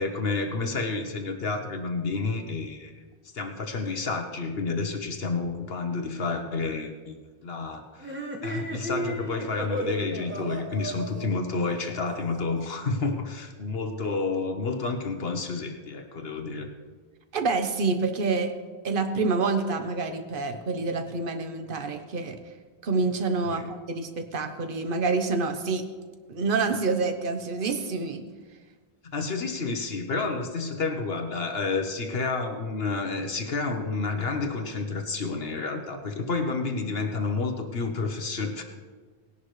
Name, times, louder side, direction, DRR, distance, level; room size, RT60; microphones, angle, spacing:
voice 1, 0.0-2.9 3.3-7.2 7.4-16.7 23.5-23.7 29.0-38.6, left 3 dB, 60° left, 5 dB, 1.2 m, -30 dB
sound 1, 8.0-12.6, right 1 dB, 10° right, 1.3 m, -34 dB
voice 2, 17.3-18.5 18.8-22.4 22.8-25.8 26.3-28.2, right 4 dB, 50° right, 7 dB, 1.1 m, -27 dB
18.5 x 11.0 x 3.2 m, 1.5 s
omnidirectional pair, 1.2 m